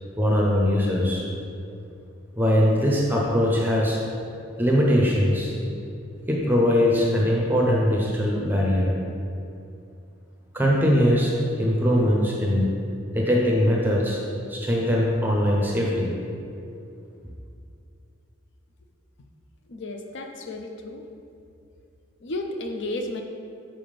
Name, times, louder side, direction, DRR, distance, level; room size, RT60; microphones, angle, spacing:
voice 1, 0.2-1.2 2.4-4.0 4.6-5.5 6.3-8.9 10.5-11.3 11.6-12.7 13.1-14.2 14.5-16.1, equal, 10° right, -3 dB, 0.6 m, -21 dB
voice 2, 19.7-21.1 22.2-23.2, left 2 dB, 55° left, 4 dB, 0.5 m, -33 dB
5.6 x 3.5 x 5.1 m, 2.6 s
head